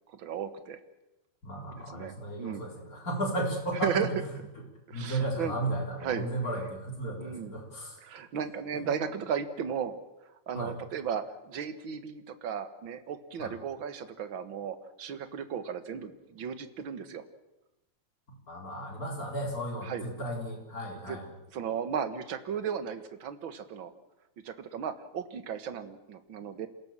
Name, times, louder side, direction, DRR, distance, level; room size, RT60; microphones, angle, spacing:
voice 1, 0.1-0.8 1.7-2.6 3.8-4.1 4.9-5.6 6.0-6.3 7.2-7.6 8.0-9.9 10.5-17.2 19.8-20.0 21.1-21.2 21.5-23.9 24.4-26.7, right 7 dB, 50° right, 11 dB, 1.8 m, -35 dB
voice 2, 1.4-4.4 4.9-8.0 8.7-9.1 10.5-10.8 13.4-13.5 18.5-21.3, right 1 dB, 25° left, 0 dB, 4.6 m, -34 dB
27.5 x 17.0 x 7.6 m, 0.98 s
omnidirectional pair, 3.5 m